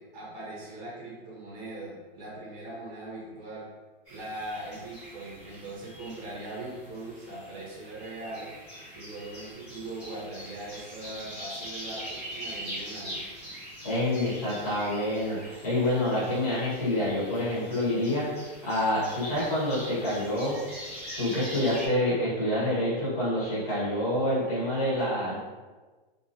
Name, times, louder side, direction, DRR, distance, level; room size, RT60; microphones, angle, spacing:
voice 1, 0.0-3.7 4.1-8.5 8.9-13.2, right 2 dB, 15° right, -6 dB, 0.5 m, -40 dB
sound 1, 4.0-21.9, equal, 10° left, 1.0 m, -43 dB
voice 2, 13.8-18.3 18.6-20.6 21.2-25.4, left 1 dB, 40° left, -8 dB, 1.2 m, -27 dB
2.9 x 2.5 x 2.5 m, 1.3 s
hypercardioid pair, 175°, 30 cm